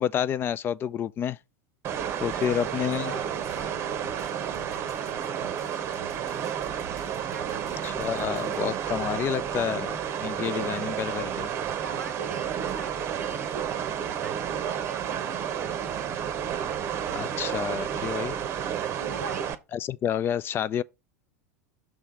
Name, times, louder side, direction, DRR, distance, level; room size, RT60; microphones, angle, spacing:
voice 1, 0.0-1.4 2.2-3.1 7.8-11.5 17.1-18.4 19.7-20.8, left 9 dB, 25° left, 0.3 m, -29 dB
sound 1, 1.8-19.5, right 9 dB, 30° right, 0.8 m, -31 dB
voice 2, 2.2-6.6 7.3-7.9 11.8-16.2 18.9-19.5, right 5 dB, 80° right, 0.6 m, -44 dB
sound 2, 3.2-8.6, right 1 dB, 90° left, 1.5 m, -52 dB
6.1 x 3.4 x 5.9 m
figure-of-eight pair, 85°, 8 cm